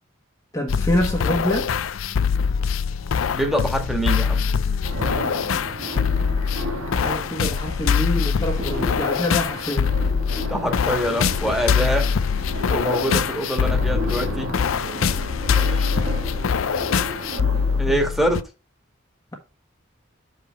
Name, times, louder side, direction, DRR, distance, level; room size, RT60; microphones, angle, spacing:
voice 1, 0.5-1.7 7.0-9.9 17.9-18.0, left 1 dB, 20° left, 1.2 m, -26 dB
sound 1, 0.7-18.4, left 6 dB, 80° left, 0.5 m, -23 dB
voice 2, 3.3-4.4 10.4-12.1 12.7-14.5 17.8-18.4, equal, ahead, 1.6 m, -24 dB
sound 2, 4.8-17.8, right 1 dB, 85° right, 1.9 m, -34 dB
6.5 x 5.2 x 4.4 m
head